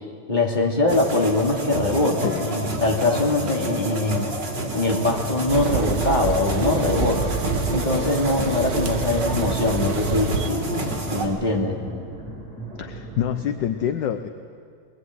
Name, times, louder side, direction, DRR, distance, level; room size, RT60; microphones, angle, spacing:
voice 1, 0.3-4.3 4.7-7.3 7.7-11.8, left 2 dB, 20° left, 0 dB, 2.9 m, -23 dB
sound 1, 0.9-11.3, right 2 dB, 55° right, 3.6 m, -28 dB
sound 2, 5.0-13.7, right 4 dB, 25° right, 8.4 m, -34 dB
sound 3, 5.5-10.5, right 7 dB, 75° right, 1.9 m, -30 dB
voice 2, 12.8-14.3, left 9 dB, 65° left, 9 dB, 1.4 m, -26 dB
22.0 x 21.0 x 9.5 m, 2.2 s
omnidirectional pair, 2.3 m